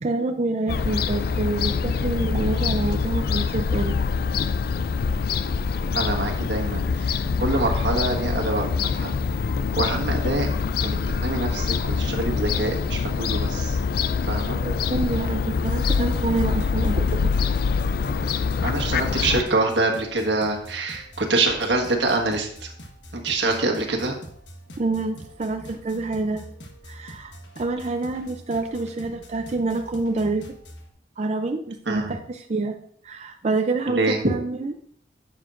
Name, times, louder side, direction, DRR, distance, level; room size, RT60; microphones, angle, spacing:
voice 1, 0.0-3.9 14.2-14.3 14.6-17.3 24.8-26.5 26.9-30.4 31.2-32.8 33.0-34.7, right 3 dB, 40° right, 5 dB, 0.5 m, -27 dB
Fowl / Gull seagull, 0.7-19.4, left 5 dB, 55° left, 0.3 m, -25 dB
voice 2, 5.9-8.7 8.9-9.1 9.7-10.5 10.8-13.8 14.2-14.6 18.6-22.7 23.1-24.1 31.9-32.2 33.9-34.2, right 2 dB, 85° right, 2 dB, 1.5 m, -25 dB
sound 1, 15.7-30.9, equal, 75° left, 1.3 m, -44 dB
11.0 x 7.1 x 2.5 m, 0.64 s
head